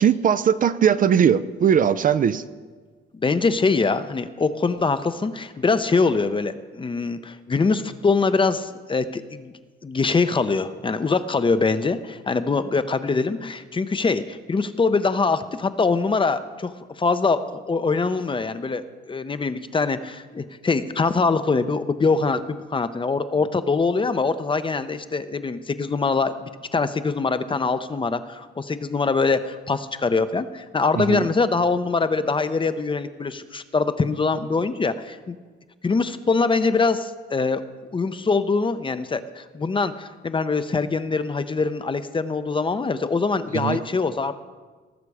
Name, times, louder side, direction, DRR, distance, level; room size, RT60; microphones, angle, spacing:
voice 1, 0.0-2.4 31.0-31.2 43.5-43.8, right 8 dB, 45° right, 14 dB, 0.5 m, -19 dB
voice 2, 3.2-9.5 9.8-35.4 35.8-37.6 37.9-44.3, left 4 dB, 25° left, 11 dB, 0.6 m, -23 dB
18.5 x 6.7 x 4.8 m, 1.4 s
cardioid pair, 90°, 20 cm